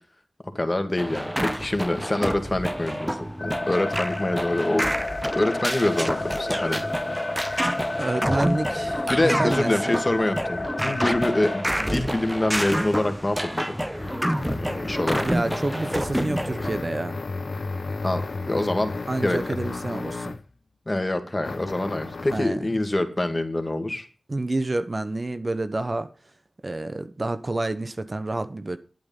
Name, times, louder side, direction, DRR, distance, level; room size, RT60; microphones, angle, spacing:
voice 1, 0.5-4.9 5.4-6.8 9.1-13.8 14.5-15.3 18.0-18.2 18.5-18.9 19.2-19.4 20.9-24.1, left 1 dB, 25° left, 2.0 m, -25 dB
sound 1, 1.0-16.7, equal, 5° right, 0.9 m, -28 dB
sound 2, 3.4-11.6, left 2 dB, 50° left, 2.1 m, -31 dB
voice 2, 8.0-9.9 10.8-11.0 15.2-17.2 19.1-20.4 22.3-22.7 24.3-26.1 26.6-28.8, right 2 dB, 40° right, 1.0 m, -28 dB
sound 3, 13.3-20.5 21.4-22.5, left 3 dB, 70° left, 0.9 m, -34 dB
10.5 x 8.8 x 5.4 m
cardioid pair, 55°, 0 cm